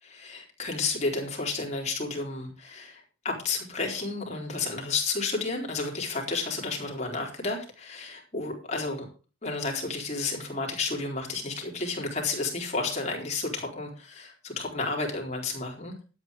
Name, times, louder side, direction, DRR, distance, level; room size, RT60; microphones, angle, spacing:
voice 1, 0.1-9.1 9.4-16.0, left 3 dB, 35° left, 0 dB, 4.3 m, -31 dB
12.5 x 9.1 x 5.1 m, 0.35 s
head